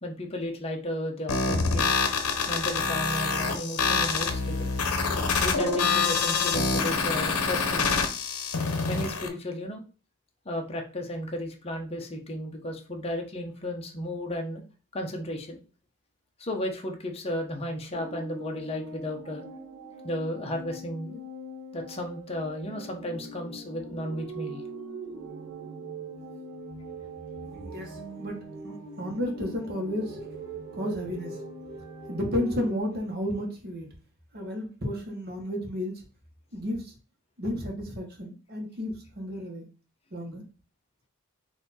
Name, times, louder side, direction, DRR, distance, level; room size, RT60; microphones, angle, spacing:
voice 1, 0.0-1.9 2.5-4.7 5.4-8.0 8.8-9.8 10.4-14.6 14.9-15.6 16.4-19.4 20.0-21.2 21.7-24.6, left 1 dB, 25° left, 2 dB, 0.8 m, -34 dB
sound 1, 1.3-9.3, left 4 dB, 80° left, 0.8 m, -26 dB
sound 2, 17.9-32.8, right 3 dB, 65° right, 0.9 m, -41 dB
voice 2, 27.7-30.2 30.7-31.4 32.1-33.9 34.3-36.0 36.5-36.9 37.4-39.6 40.1-40.4, left 1 dB, 45° right, 2 dB, 1.2 m, -32 dB
4.2 x 2.7 x 4.1 m, 0.36 s
head